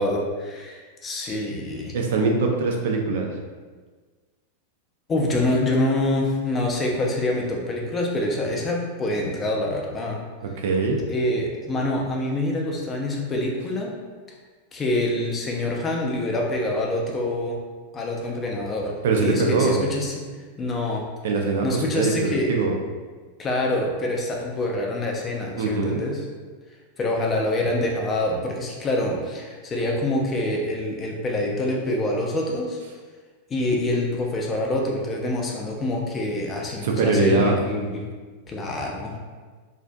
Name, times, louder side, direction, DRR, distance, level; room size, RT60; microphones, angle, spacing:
voice 1, 0.0-2.0 5.1-10.2 11.1-13.9 14.7-17.6 17.9-20.1 20.6-21.0 21.6-22.5 23.4-26.2 27.0-32.8 33.5-38.1 38.5-39.1, left 1 dB, 25° left, -1 dB, 0.4 m, -26 dB
voice 2, 1.9-3.3 10.4-11.0 19.0-19.8 21.2-22.8 25.6-26.0 36.8-37.6, right 3 dB, 55° right, 1 dB, 0.3 m, -22 dB
2.5 x 2.4 x 2.2 m, 1.4 s
figure-of-eight pair, 90°, 0 cm